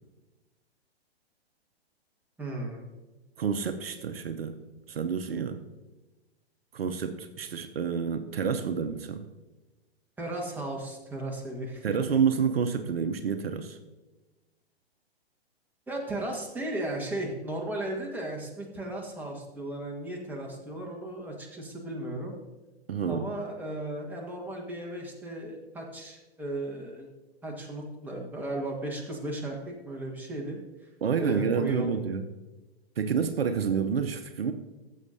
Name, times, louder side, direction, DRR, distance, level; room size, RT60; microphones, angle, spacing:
voice 1, 2.4-2.8 10.2-12.0 15.9-22.4 23.1-27.1 27.4-30.6 31.2-32.0, right 1 dB, 5° right, -2 dB, 1.5 m, -35 dB
voice 2, 3.4-5.6 6.7-9.3 11.8-13.8 22.9-23.3 31.0-32.3 33.0-34.5, right 6 dB, 65° right, 8 dB, 0.8 m, -29 dB
14.0 x 7.4 x 2.8 m, 1.1 s
figure-of-eight pair, 120°, 32 cm